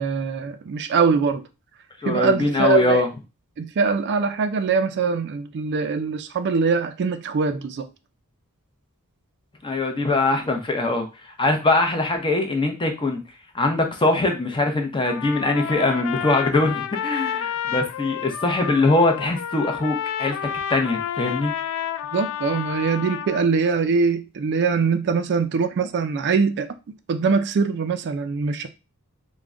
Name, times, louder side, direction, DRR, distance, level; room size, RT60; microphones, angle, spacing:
voice 1, 0.0-1.5 2.0-3.0 3.6-7.9 22.1-28.7, right 5 dB, 50° right, 0.3 m, -23 dB
voice 2, 2.0-3.1 9.6-11.1 11.4-13.2 13.5-20.4 20.7-21.5, left 2 dB, 20° left, 0.6 m, -22 dB
Trumpet, 15.1-23.5, left 9 dB, 60° left, 0.3 m, -30 dB
3.6 x 2.2 x 3.6 m
head